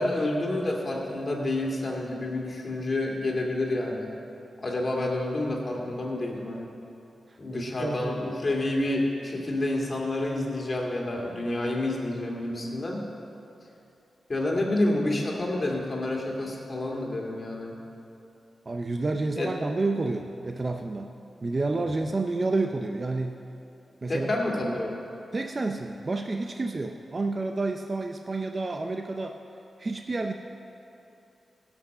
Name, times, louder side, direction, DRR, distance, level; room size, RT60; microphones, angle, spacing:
voice 1, 0.0-4.1 4.6-6.7 7.4-13.1 14.3-17.8 19.3-19.5 21.8-21.9 24.1-25.0, left 1 dB, 40° left, -1 dB, 2.4 m, -29 dB
voice 2, 7.5-8.2 18.7-21.1 21.4-23.4 24.0-24.4 25.3-29.4 29.8-30.3, right 3 dB, 40° right, 4 dB, 0.6 m, -29 dB
17.0 x 6.2 x 6.7 m, 2.8 s
cardioid pair, 70°, 0 cm